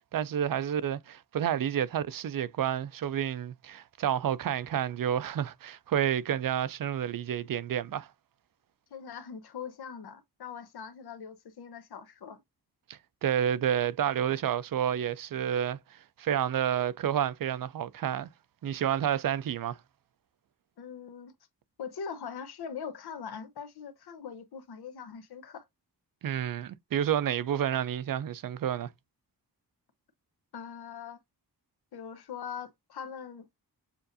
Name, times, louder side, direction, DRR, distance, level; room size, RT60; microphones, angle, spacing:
voice 1, 0.1-8.1 12.9-18.3 18.6-19.8 26.2-28.9, right 9 dB, 60° right, 0.5 m, -30 dB
voice 2, 8.9-12.4 20.8-21.3 21.8-25.6 30.5-31.2 31.9-33.5, left 7 dB, 90° left, 1.0 m, -42 dB
6.9 x 2.5 x 2.6 m
wide cardioid pair, 115°, 37 cm